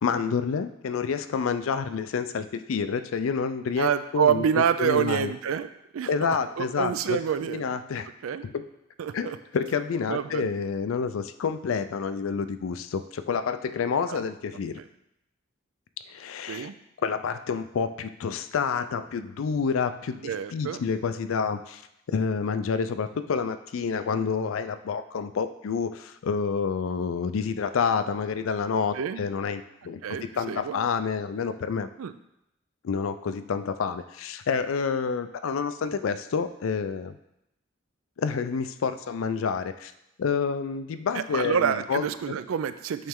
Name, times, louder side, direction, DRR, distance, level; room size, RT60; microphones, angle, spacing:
voice 1, 0.0-5.3 6.1-7.2 7.5-8.1 8.4-8.6 9.1-14.8 16.1-16.7 17.0-21.8 22.1-31.9 32.8-37.2 38.2-39.9 40.2-42.3, left 5 dB, 75° left, 11 dB, 0.4 m, -28 dB
voice 2, 3.8-5.7 5.9-6.1 6.6-7.6 8.2-8.4 9.0-9.4 10.1-10.5 14.1-14.2 16.5-16.7 20.2-20.9 28.9-29.2 30.0-30.8 32.0-32.1 41.1-43.1, right 8 dB, 85° right, 12 dB, 0.4 m, -27 dB
8.7 x 3.2 x 3.6 m, 0.82 s
head